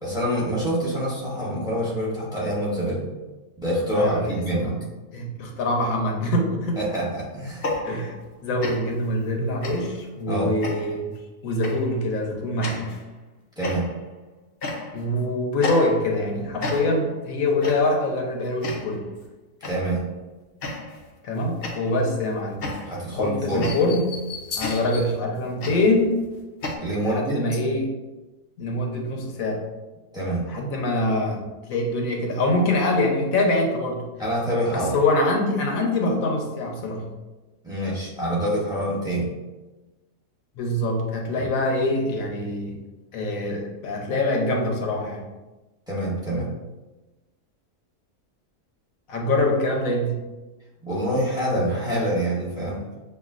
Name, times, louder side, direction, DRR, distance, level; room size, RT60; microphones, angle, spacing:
voice 1, 0.0-3.1 3.6-4.7 6.8-7.7 10.3-10.5 13.6-13.9 19.6-20.1 22.9-23.7 26.8-27.4 30.1-30.5 34.2-34.9 37.6-39.3 41.4-41.5 45.9-46.5 50.8-52.8, right 1 dB, 5° right, -6 dB, 1.2 m, -26 dB
voice 2, 3.9-4.7 5.1-6.8 7.8-8.1 8.4-11.1 11.4-13.0 14.9-19.0 21.2-22.8 23.1-24.1 24.6-26.1 27.0-27.9 28.6-29.6 30.5-34.0 34.7-37.1 40.6-42.8 43.1-45.2 49.1-50.2, left 1 dB, 80° left, 0 dB, 1.2 m, -24 dB
sound 1, 7.5-8.3 8.6-9.0 9.6-10.0 10.6-11.1 11.6-11.9 12.6-13.0 13.6-14.1 14.6-15.1 15.6-16.3 16.6-17.1 17.6-18.0 18.6-19.0 19.6-20.0 20.6-21.1 21.6-26.8, left 2 dB, 55° left, 0.7 m, -33 dB
6.6 x 2.5 x 2.4 m, 1.1 s
omnidirectional pair, 1.4 m